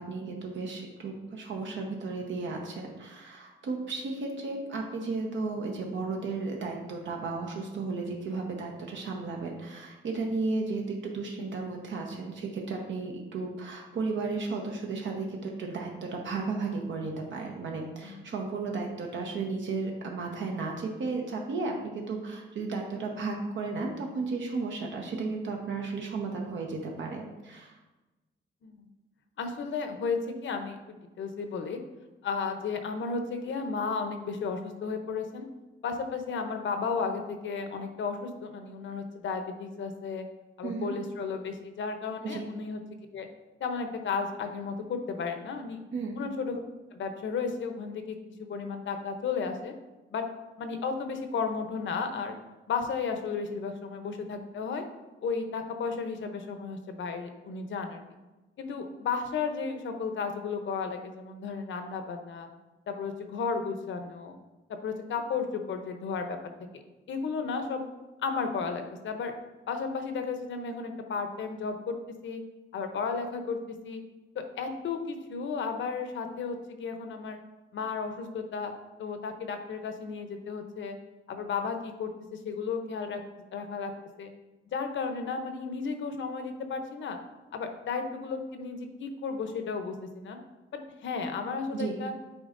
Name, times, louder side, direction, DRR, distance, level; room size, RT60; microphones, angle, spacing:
voice 1, 0.0-27.8 40.6-40.9 42.2-42.4 45.9-46.2 91.7-92.0, right 3 dB, 65° right, 0 dB, 1.0 m, -34 dB
voice 2, 29.4-31.8 32.2-35.4 35.8-40.2 40.6-42.8 43.1-43.3 43.6-45.8 46.2-46.6 46.9-49.7 50.1-50.2 50.6-52.4 52.7-54.8 55.2-58.0 58.6-62.5 62.9-64.4 64.8-66.4 66.7-66.8 67.1-67.8 68.2-69.3 69.7-72.0 72.2-72.4 72.7-73.6 73.8-74.0 74.3-77.4 77.7-78.7 79.0-81.0 81.3-83.2 83.5-83.9 84.2-84.3 84.7-87.2 87.5-90.4 90.7-92.1, left 5 dB, 65° left, 6 dB, 0.7 m, -33 dB
8.7 x 4.4 x 2.6 m, 1.1 s
cardioid pair, 130°, 21 cm